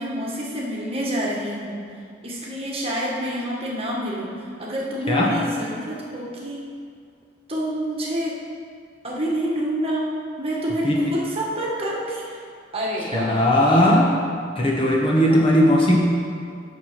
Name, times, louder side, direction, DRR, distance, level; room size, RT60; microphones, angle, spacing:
voice 1, 0.0-1.8 2.2-6.6 7.5-8.4 9.0-10.1 10.4-12.4 12.7-14.0 15.3-15.4, equal, 30° right, -4 dB, 1.6 m, -28 dB
voice 2, 13.1-14.1 14.6-16.0, equal, 30° left, -2 dB, 1.1 m, -18 dB
7.5 x 6.3 x 5.8 m, 2.2 s
head